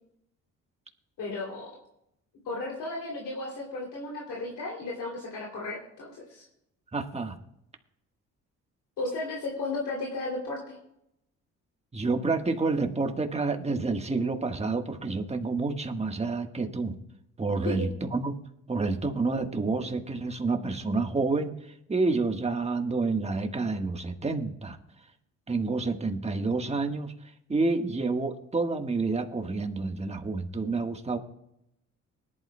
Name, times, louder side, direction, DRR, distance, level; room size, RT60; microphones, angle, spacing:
voice 1, 1.2-1.7 2.4-6.4 9.0-10.8 17.6-17.9, left 2 dB, 75° left, -3 dB, 3.0 m, -34 dB
voice 2, 6.9-7.4 11.9-16.9 17.4-18.4 18.7-24.8 25.5-27.1 27.5-31.2, right 3 dB, 20° right, 5 dB, 1.4 m, -29 dB
20.0 x 11.5 x 2.3 m, 0.81 s
cardioid pair, 90°, 30 cm